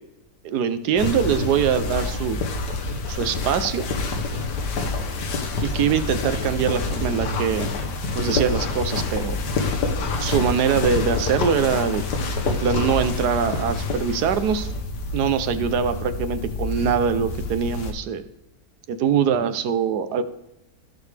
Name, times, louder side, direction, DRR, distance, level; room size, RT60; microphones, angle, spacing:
voice 1, 0.4-2.4 3.1-3.9 5.6-7.7 8.1-9.4 10.2-12.1 12.4-14.7 15.1-18.2 18.9-20.2, right 7 dB, 75° right, 11 dB, 1.3 m, -23 dB
sound 1, 1.0-17.9, left 3 dB, 80° left, 1.6 m, -27 dB
14.5 x 6.6 x 3.3 m, 0.91 s
omnidirectional pair, 1.8 m